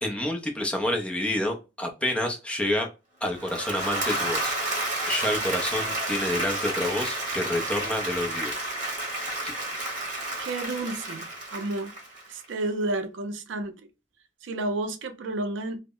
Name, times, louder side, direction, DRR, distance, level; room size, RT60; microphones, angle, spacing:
voice 1, 0.0-2.9 3.2-4.5 5.1-8.5 9.4-9.5, left 1 dB, 5° left, 0.5 m, -28 dB
Applause / Crowd, 3.3-12.5, right 1 dB, 40° right, 1.0 m, -31 dB
voice 2, 10.4-11.3 11.5-11.9 12.3-13.7 14.4-15.8, right 2 dB, 70° right, 0.4 m, -31 dB
2.0 x 2.0 x 3.6 m
head